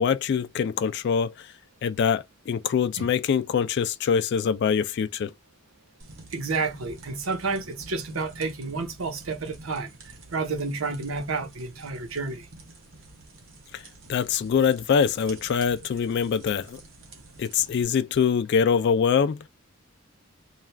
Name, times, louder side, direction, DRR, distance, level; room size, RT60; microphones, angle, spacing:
voice 1, 0.0-1.5 1.8-5.3 13.7-13.8 14.1-16.8 17.4-19.5, left 6 dB, 55° left, 0.3 m, -24 dB
sound 1, 6.0-17.8, right 2 dB, 65° right, 1.2 m, -48 dB
voice 2, 6.3-12.5, right 4 dB, 90° right, 1.0 m, -30 dB
3.2 x 2.4 x 2.2 m
head